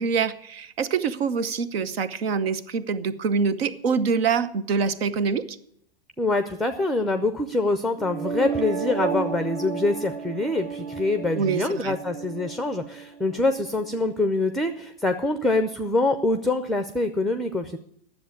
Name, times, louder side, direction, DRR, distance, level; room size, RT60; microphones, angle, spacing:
voice 1, 0.0-5.6 11.3-12.0, right 5 dB, 80° right, 15 dB, 1.0 m, -25 dB
voice 2, 6.2-17.8, left 2 dB, ahead, 9 dB, 0.5 m, -25 dB
sound 1, 8.0-14.0, right 6 dB, 55° right, 1.6 m, -32 dB
10.0 x 7.5 x 9.1 m, 0.69 s
hypercardioid pair, 120°, 30 cm